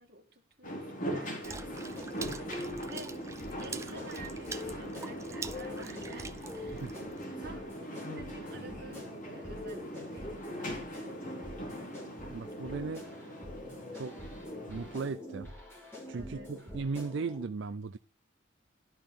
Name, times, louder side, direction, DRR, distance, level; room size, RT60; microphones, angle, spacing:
voice 1, 0.0-3.1 3.6-7.0 7.4-11.1 16.1-16.6, right 2 dB, 50° right, 2.4 m, -51 dB
sound 1, 0.6-15.1, equal, 40° left, 3.9 m, -41 dB
sound 2, 1.4-17.4, left 1 dB, 15° left, 3.7 m, -45 dB
Water / Splash splatter, 1.4-7.2, right 4 dB, 15° right, 0.6 m, -46 dB
voice 2, 12.3-13.0 13.9-14.1 14.7-15.5 16.1-18.0, right 4 dB, 70° right, 0.5 m, -37 dB
12.0 x 5.7 x 6.7 m
head